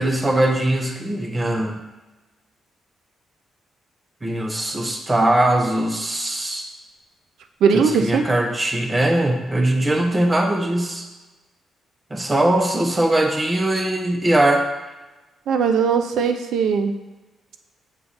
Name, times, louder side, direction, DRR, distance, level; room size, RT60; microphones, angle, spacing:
voice 1, 0.0-1.8 4.2-6.7 7.7-11.1 12.1-14.7, right 1 dB, 15° right, 4 dB, 0.7 m, -21 dB
voice 2, 7.6-8.3 15.5-17.0, right 6 dB, 85° right, 7 dB, 0.5 m, -19 dB
7.3 x 3.3 x 5.6 m, 1.1 s
cardioid pair, 170°, 0 cm